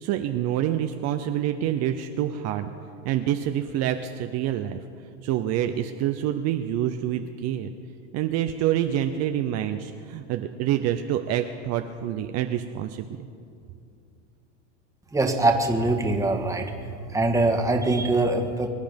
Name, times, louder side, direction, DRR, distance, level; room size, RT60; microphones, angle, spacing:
voice 1, 0.0-2.7 3.0-4.8 5.2-7.7 8.1-13.1, right 11 dB, 50° right, 7 dB, 0.8 m, -27 dB
voice 2, 15.1-16.7 17.1-18.7, right 2 dB, 10° right, 3 dB, 1.7 m, -23 dB
24.0 x 10.0 x 5.3 m, 2.5 s
supercardioid pair, 120°, 34 cm